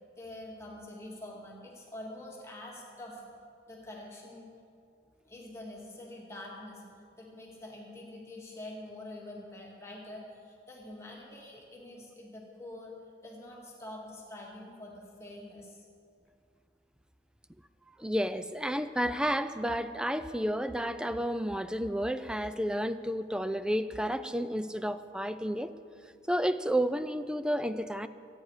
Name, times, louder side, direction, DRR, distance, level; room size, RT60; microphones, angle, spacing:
voice 1, 0.2-3.2 3.7-4.5 5.2-13.0 13.2-15.9, left 1 dB, 15° left, -3 dB, 2.3 m, -46 dB
voice 2, 18.0-25.7 26.3-28.1, equal, 5° right, 12 dB, 0.4 m, -31 dB
25.0 x 9.4 x 4.9 m, 2.4 s
head